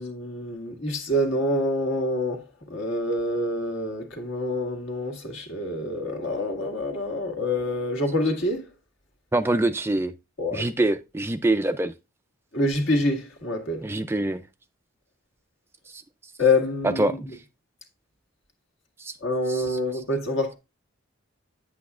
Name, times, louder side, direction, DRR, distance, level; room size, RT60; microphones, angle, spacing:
voice 1, 0.0-2.4 2.7-8.7 10.4-10.7 12.5-13.9 16.4-17.1 19.2-20.6, left 1 dB, 60° left, 1.9 m, -26 dB
voice 2, 9.3-10.1 10.5-11.9 13.8-14.4 15.9-16.0 16.8-17.3 19.0-19.1 19.5-19.8, right 2 dB, 10° right, 0.3 m, -25 dB
9.5 x 8.1 x 2.4 m
head